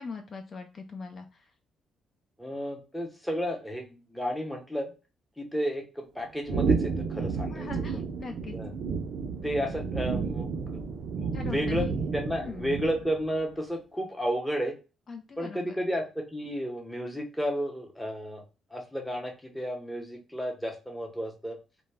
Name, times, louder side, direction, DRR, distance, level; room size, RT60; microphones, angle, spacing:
voice 1, 0.0-1.5 7.5-8.6 11.3-12.0 12.4-12.8 15.1-15.8, left 4 dB, 45° left, 4 dB, 0.3 m, -41 dB
voice 2, 2.4-4.9 5.4-7.7 8.5-8.7 9.4-10.5 11.2-14.7 15.4-18.4 18.7-21.6, equal, 5° left, 2 dB, 0.7 m, -32 dB
sound 1, 6.5-13.3, right 5 dB, 65° right, 0.4 m, -31 dB
2.1 x 2.0 x 3.3 m, 0.31 s
cardioid pair, 90°, 0 cm